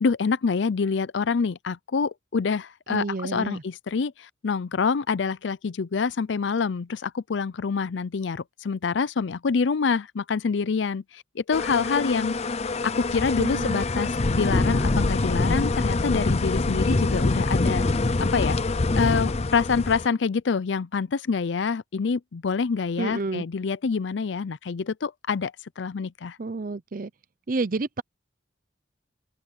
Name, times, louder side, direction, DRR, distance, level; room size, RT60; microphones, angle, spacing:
voice 1, 0.0-12.3 12.8-17.8 18.3-18.6 19.0-26.4, left 5 dB, 75° left, 0.5 m, -26 dB
voice 2, 2.9-3.6 13.4-13.8 23.0-23.5 26.4-27.1 27.5-28.0, right 3 dB, 50° right, 0.6 m, -29 dB
sound 1, 11.5-20.1, left 2 dB, 35° left, 0.6 m, -25 dB
head